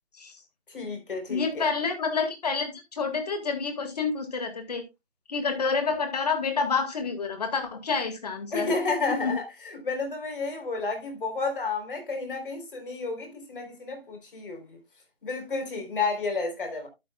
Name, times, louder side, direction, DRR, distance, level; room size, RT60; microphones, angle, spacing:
voice 1, 0.7-1.7 8.5-9.4 9.8-14.6 15.2-16.9, left 3 dB, 55° left, 3.9 m, -31 dB
voice 2, 1.3-4.8 5.3-8.7 9.1-9.4, left 5 dB, 40° left, 2.1 m, -28 dB
11.5 x 8.0 x 2.3 m
figure-of-eight pair, 165°, 32 cm